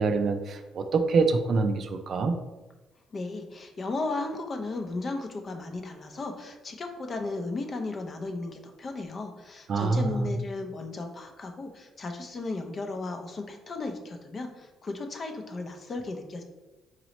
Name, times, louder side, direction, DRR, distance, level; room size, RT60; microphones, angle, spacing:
voice 1, 0.0-2.4 9.7-10.3, right 4 dB, 55° right, 7 dB, 0.4 m, -25 dB
voice 2, 3.1-16.4, left 3 dB, 40° left, 4 dB, 0.6 m, -35 dB
4.0 x 3.0 x 3.0 m, 1.1 s
cardioid pair, 100°, 0 cm